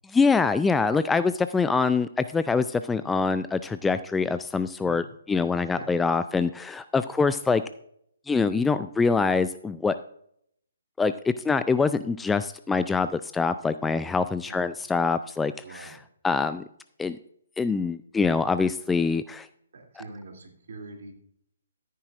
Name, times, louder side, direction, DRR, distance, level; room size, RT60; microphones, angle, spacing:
voice 1, 0.1-7.6 8.3-9.9 11.0-15.9 16.2-16.6 17.0-17.2 17.6-19.5, left 4 dB, 5° left, 12 dB, 0.3 m, -24 dB
voice 2, 4.8-5.1 5.7-5.9 14.5-14.7 15.6-16.0 19.7-21.1, right 3 dB, 55° right, 3 dB, 2.8 m, -44 dB
14.0 x 9.4 x 2.5 m, 0.68 s
figure-of-eight pair, 135°, 0 cm